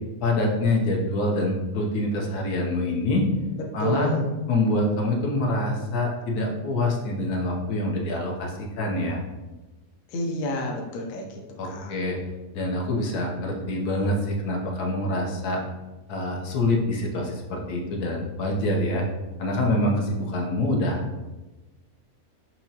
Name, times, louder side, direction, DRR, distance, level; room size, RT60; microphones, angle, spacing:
voice 1, 0.2-3.3 3.7-4.1 4.5-9.2 11.6-12.2 12.5-15.6 16.1-19.0 19.4-21.3, left 1 dB, 90° left, -1 dB, 1.3 m, -25 dB
voice 2, 3.6-4.2 10.1-11.9, left 1 dB, 70° left, 1 dB, 1.0 m, -30 dB
6.1 x 2.9 x 2.7 m, 1.1 s
omnidirectional pair, 1.6 m